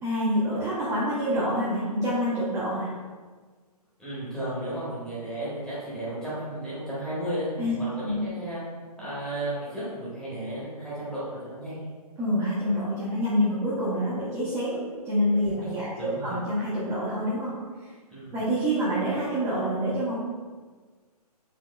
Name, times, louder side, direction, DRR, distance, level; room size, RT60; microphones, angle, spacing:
voice 1, 0.0-2.9 7.6-7.7 8.0-8.2 12.2-17.5 18.3-20.1, equal, 15° right, -12 dB, 0.7 m, -27 dB
voice 2, 4.0-7.5 7.8-8.6 9.0-11.8 15.6-16.4 18.1-18.4, right 1 dB, 5° left, -11 dB, 1.0 m, -34 dB
4.3 x 2.8 x 2.2 m, 1.4 s
figure-of-eight pair, 135°, 20 cm